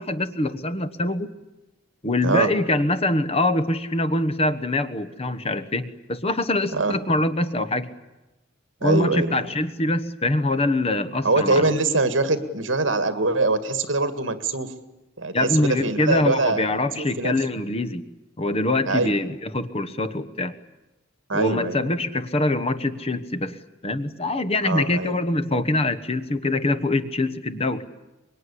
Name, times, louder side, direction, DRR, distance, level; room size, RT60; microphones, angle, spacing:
voice 1, 0.0-1.3 2.0-7.9 8.8-11.7 15.3-18.0 18.4-20.5 21.3-27.8, left 2 dB, 30° left, 11 dB, 1.2 m, -24 dB
voice 2, 8.8-9.3 11.2-14.7 15.2-16.7 17.0-17.3 18.9-19.1 21.3-21.8 24.6-25.2, right 3 dB, 70° right, 11 dB, 2.0 m, -23 dB
25.0 x 21.5 x 10.0 m, 1.0 s
head